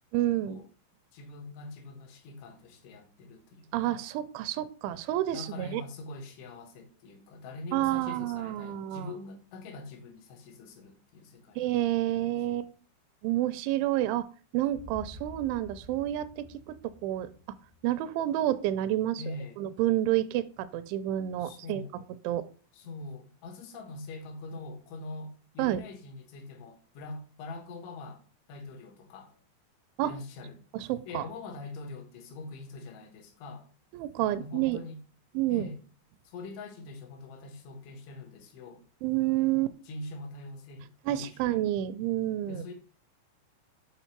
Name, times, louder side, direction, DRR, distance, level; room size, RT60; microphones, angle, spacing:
voice 1, 0.1-0.6 3.7-5.8 7.7-9.1 11.6-12.7 13.2-14.3 14.5-17.6 17.8-19.2 19.6-21.8 22.3-22.5 25.6-25.8 30.0-30.1 30.7-31.2 33.9-34.8 35.3-35.7 39.0-39.7 41.1-42.6, right 14 dB, 85° right, 2.9 m, -29 dB
voice 2, 1.1-4.1 5.3-12.0 19.2-19.6 21.4-22.0 22.7-28.2 28.5-29.4 30.0-30.6 31.1-33.7 34.4-35.0 35.5-35.8 36.3-38.8 39.4-41.6 42.5-42.7, left 2 dB, 85° left, 3.6 m, -43 dB
sound 1, 14.6-18.7, equal, 65° right, 0.9 m, -50 dB
8.1 x 4.0 x 4.5 m
omnidirectional pair, 5.3 m